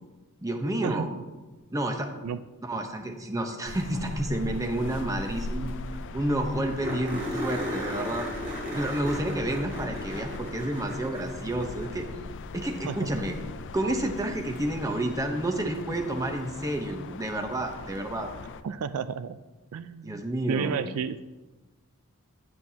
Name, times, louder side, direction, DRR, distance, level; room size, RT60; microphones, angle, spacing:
voice 1, 0.4-1.1 1.7-2.1 2.6-5.7 6.1-8.3 8.7-12.1 12.5-13.4 13.7-18.3 20.0-20.8, right 1 dB, 15° right, 4 dB, 0.8 m, -30 dB
sound 1, 3.7-18.6, left 3 dB, 55° left, 0.4 m, -40 dB
sound 2, 5.7-5.8 6.1-6.2 6.8-12.2 14.6-14.7 17.5-17.6, left 1 dB, 55° right, 3.3 m, -36 dB
voice 2, 18.6-19.4 19.7-20.2 20.5-21.2, right 7 dB, 75° right, 13 dB, 0.3 m, -31 dB
9.4 x 9.4 x 2.8 m, 1.2 s
head